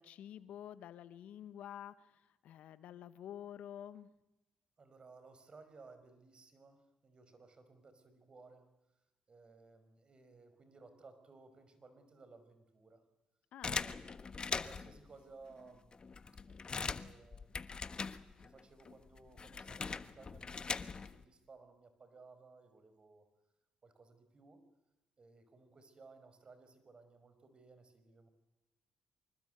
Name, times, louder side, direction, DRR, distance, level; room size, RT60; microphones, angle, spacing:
voice 1, 0.0-4.1 13.5-13.8, left 10 dB, 70° left, 14 dB, 1.2 m, -49 dB
voice 2, 4.8-8.7 9.3-13.0 13.8-16.0 16.5-23.3 23.8-24.6 25.2-28.3, right 3 dB, 45° right, 10 dB, 5.4 m, -59 dB
sound 1, 13.6-15.0 15.6-15.7 15.9-18.6 18.8-21.2, left 5 dB, 40° left, 1.3 m, -41 dB
25.5 x 21.5 x 8.1 m, 0.96 s
supercardioid pair, 55°, 2 cm